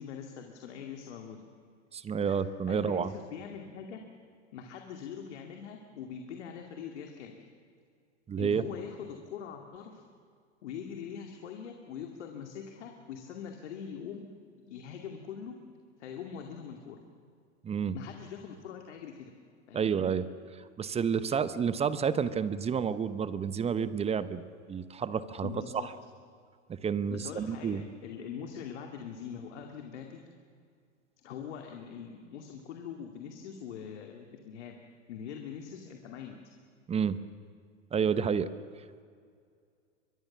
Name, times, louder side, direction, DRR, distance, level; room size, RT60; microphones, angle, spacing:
voice 1, 0.0-1.4 2.3-2.4 2.7-4.0 4.5-7.4 8.4-10.0 10.6-14.3 14.6-15.6 16.0-17.0 17.9-19.3 19.7-19.9 25.4-25.9 27.1-30.2 31.2-34.8 35.1-36.4, left 7 dB, 65° left, 3 dB, 2.4 m, -43 dB
voice 2, 1.9-3.1 8.3-8.7 17.6-18.0 19.7-20.2 20.8-25.8 26.7-27.9 36.9-37.2 37.9-38.5, right 7 dB, 15° right, 14 dB, 0.9 m, -30 dB
23.5 x 22.5 x 7.3 m, 2.2 s
hypercardioid pair, 105°, 36 cm